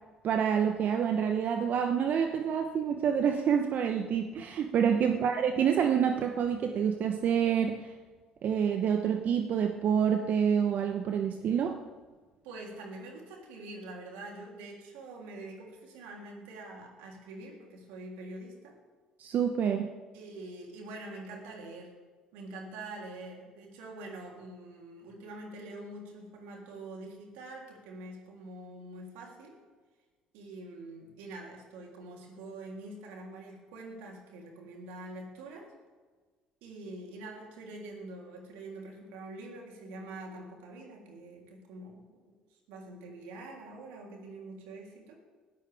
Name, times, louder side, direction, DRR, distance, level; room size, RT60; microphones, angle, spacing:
voice 1, 0.2-7.9 8.4-11.8 19.2-19.9, right 7 dB, 55° right, 6 dB, 1.0 m, -27 dB
voice 2, 12.4-18.8 20.1-21.9 22.3-29.6 30.3-35.7 36.6-42.2 42.7-45.1, right 2 dB, 70° right, 0 dB, 3.4 m, -45 dB
19.5 x 14.0 x 3.6 m, 1.4 s
hypercardioid pair, 55°, 3 cm